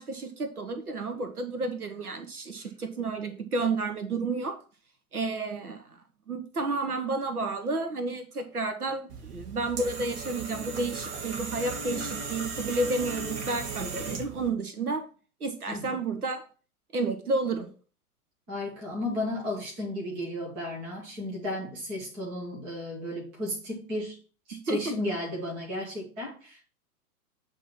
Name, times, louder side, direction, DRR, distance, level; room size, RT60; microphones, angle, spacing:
voice 1, 0.0-4.6 5.1-6.0 6.3-15.0 15.4-16.5 16.9-17.7 24.5-24.9, right 3 dB, 80° right, 8 dB, 1.0 m, -31 dB
sound 1, 9.1-14.5, right 4 dB, 45° right, 1.8 m, -36 dB
voice 2, 18.5-24.2 24.5-26.7, left 1 dB, 5° right, -3 dB, 0.3 m, -34 dB
8.0 x 2.9 x 5.9 m, 0.38 s
figure-of-eight pair, 100°, 44 cm